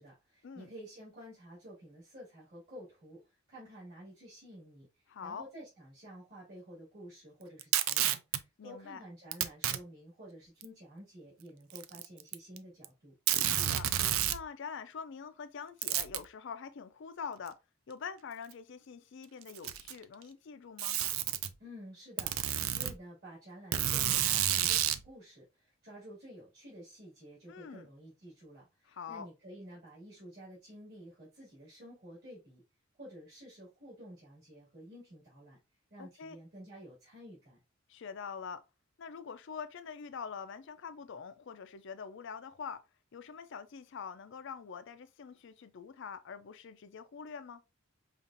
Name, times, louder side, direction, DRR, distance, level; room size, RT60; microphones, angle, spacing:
voice 1, 0.0-3.2 3.5-4.9 5.2-13.1 21.6-32.6 33.0-35.6 35.9-37.6, equal, 50° right, 2.2 m, -51 dB
voice 2, 5.1-5.4 8.6-9.0 13.4-13.9 14.3-17.6 17.9-21.0 27.5-27.9 28.8-29.3 36.0-36.4 37.9-38.6 39.0-42.8 43.1-47.6, left 6 dB, 60° left, 0.4 m, -44 dB
Packing tape duct tape, 7.6-8.4 9.3-9.8 10.6-10.7 11.7-12.6 12.8-12.9 13.3-14.4 15.8-16.3 17.5-17.6 18.5-18.6 19.4-20.0 20.8-21.5 22.2-22.9 23.7-25.0, right 11 dB, 85° right, 0.4 m, -30 dB
5.2 x 2.4 x 2.6 m
head